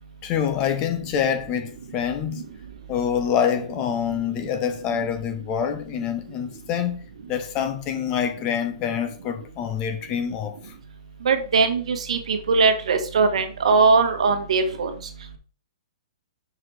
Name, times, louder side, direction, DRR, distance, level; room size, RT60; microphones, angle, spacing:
voice 1, 0.2-2.5 2.9-7.0 7.3-10.6, left 8 dB, 20° left, 0.6 m, -26 dB
voice 2, 11.2-14.9, right 4 dB, 60° right, 1.3 m, -20 dB
5.9 x 4.8 x 4.6 m
hypercardioid pair, 170°, 4 cm